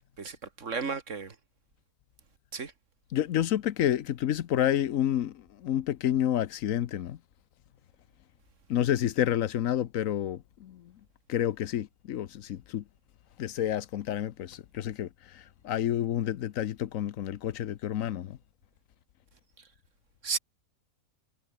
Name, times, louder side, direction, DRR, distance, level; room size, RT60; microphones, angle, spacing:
voice 1, 0.2-1.4 2.5-2.7 20.2-20.4, right 5 dB, 65° right, 2.3 m, -33 dB
voice 2, 3.1-7.2 8.7-10.9 11.3-12.8 13.4-18.4, left 11 dB, 80° left, 1.2 m, -29 dB
omnidirectional pair, 1.4 m